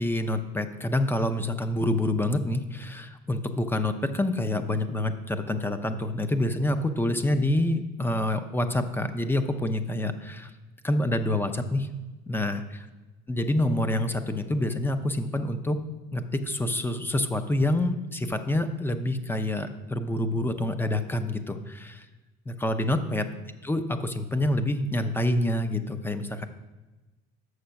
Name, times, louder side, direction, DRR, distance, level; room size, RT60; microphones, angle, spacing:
voice 1, 0.0-10.5 10.8-11.9 12.3-12.6 13.3-15.8 16.1-22.1 22.5-23.3 23.6-26.5, left 1 dB, 10° left, 9 dB, 0.6 m, -27 dB
7.0 x 6.5 x 5.7 m, 1.1 s
cardioid pair, 120°, 21 cm